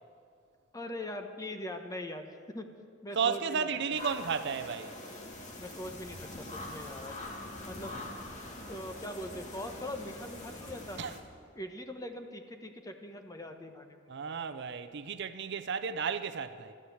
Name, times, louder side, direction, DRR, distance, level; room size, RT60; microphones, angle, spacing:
voice 1, 0.7-2.7 3.0-3.7 5.6-7.2 7.7-7.9 8.7-11.0 11.5-14.0, left 1 dB, 20° left, 1.1 m, -41 dB
voice 2, 3.1-4.9 11.0-11.2 14.1-16.7, right 6 dB, 60° right, 0.6 m, -33 dB
sound 1, 3.9-11.2, left 1 dB, 40° left, 2.0 m, -44 dB
13.0 x 13.0 x 7.9 m
head